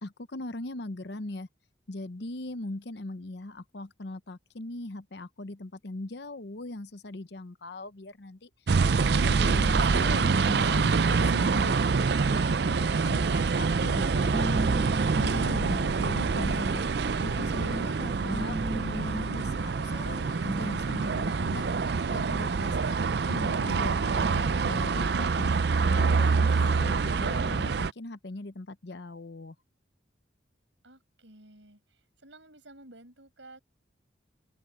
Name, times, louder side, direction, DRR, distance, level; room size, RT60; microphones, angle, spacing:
voice 1, 0.0-1.5 1.9-8.5 9.0-14.5 15.2-16.8 17.2-21.7 22.1-23.0 23.3-29.6, left 2 dB, 60° left, 0.8 m, -39 dB
sound 1, 8.7-27.9, right 4 dB, 60° right, 0.5 m, -26 dB
sound 2, 13.8-20.8, equal, 10° right, 2.1 m, -38 dB
voice 2, 30.8-31.8 32.2-33.6, right 2 dB, 80° right, 6.1 m, -52 dB
open air
head